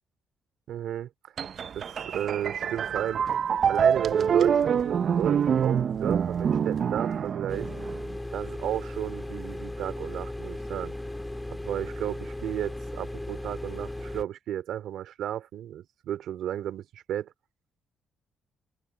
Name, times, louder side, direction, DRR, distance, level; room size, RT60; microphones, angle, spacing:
voice 1, 0.7-1.3 1.7-3.3 3.7-7.7 8.3-10.9 11.5-17.3, right 11 dB, 75° right, 3.6 m, -33 dB
sound 1, 1.4-8.1, right 7 dB, 55° right, 0.7 m, -26 dB
sound 2, 7.5-14.2, left 1 dB, 10° left, 2.3 m, -37 dB
cardioid pair, 90°, 0 cm